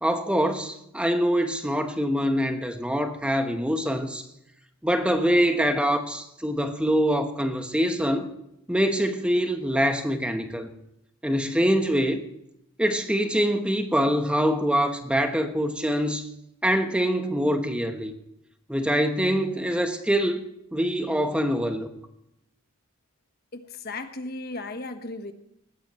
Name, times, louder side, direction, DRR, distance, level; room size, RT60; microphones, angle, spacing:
voice 1, 0.0-4.2 4.8-8.3 8.7-10.7 11.2-12.2 12.8-16.3 16.6-18.1 18.7-20.4 20.7-21.9, equal, 5° right, 6 dB, 1.1 m, -24 dB
voice 2, 23.5-25.3, left 2 dB, 45° left, 8 dB, 1.3 m, -35 dB
19.5 x 15.5 x 3.1 m, 0.80 s
head